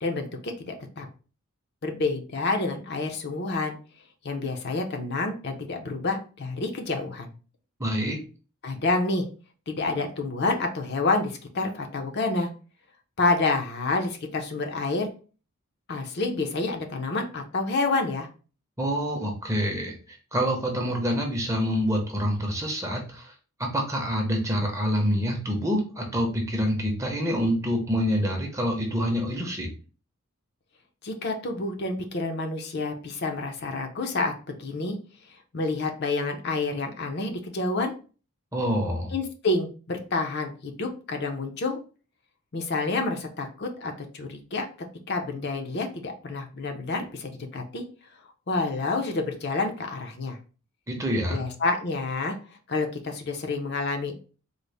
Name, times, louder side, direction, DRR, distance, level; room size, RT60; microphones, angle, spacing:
voice 1, 0.0-1.1 1.8-3.8 4.2-7.3 8.6-9.3 9.7-12.5 13.2-15.1 15.9-18.3 31.0-35.0 35.5-37.9 39.1-41.8 42.5-44.7 45.1-47.9 48.5-50.4 51.3-52.4 52.7-54.2, left 3 dB, 50° left, 4 dB, 0.5 m, -28 dB
voice 2, 7.8-8.2 18.8-23.3 23.6-29.7 38.5-39.1 50.9-51.5, equal, 15° right, 1 dB, 0.6 m, -26 dB
3.9 x 2.0 x 3.2 m, 0.37 s
head